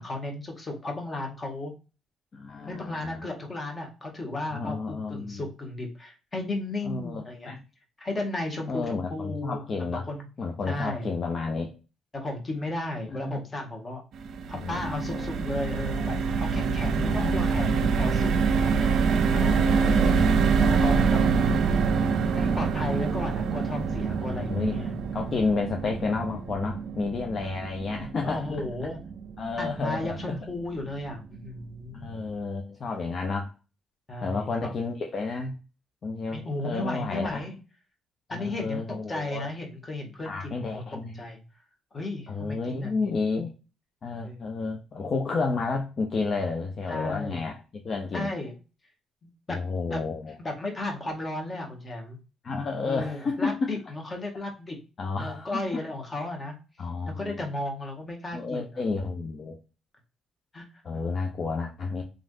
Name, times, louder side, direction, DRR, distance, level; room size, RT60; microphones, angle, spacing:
voice 1, 0.0-1.7 2.6-7.5 8.0-9.6 9.9-10.2 10.7-11.0 12.1-14.0 14.5-18.9 19.4-19.5 20.6-21.2 22.3-24.9 28.2-29.0 29.6-32.2 34.1-34.7 36.3-37.6 38.3-41.4 41.9-42.9 44.2-44.4 46.9-47.4 48.1-48.6 49.5-49.6 49.9-50.1 50.4-52.2 52.8-54.8 55.2-56.5 57.0-58.8 60.5-60.7, left 2 dB, 30° left, 1.3 m, -34 dB
voice 2, 2.3-3.2 4.5-5.4 6.9-7.6 8.7-10.1 10.4-11.7 13.1-13.4 14.5-15.4 16.9-17.7 19.3-20.2 24.2-24.8 25.1-28.5 29.4-30.4 31.9-33.5 34.2-35.6 36.0-37.5 38.3-39.5 40.2-41.2 42.3-43.5 44.0-47.6 47.8-48.3 49.5-50.4 52.4-53.7 55.0-55.6 56.8-57.4 58.3-59.6 60.8-62.0, left 4 dB, 50° left, 0.6 m, -31 dB
sound 1, 14.1-30.4 30.8-31.0 31.2-31.5, right 5 dB, 65° right, 0.4 m, -26 dB
3.2 x 2.5 x 2.5 m
supercardioid pair, 65°, 0 cm